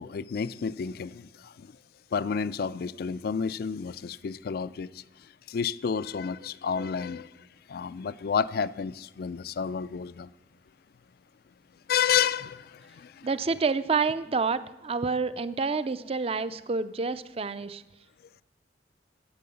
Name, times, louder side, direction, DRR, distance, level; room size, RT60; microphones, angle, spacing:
voice 1, 0.0-1.7 2.1-5.0 5.5-10.3 11.9-13.3, left 7 dB, 55° left, 0.3 m, -30 dB
voice 2, 13.2-17.8, right 4 dB, 35° right, 0.4 m, -28 dB
12.0 x 8.5 x 6.8 m
head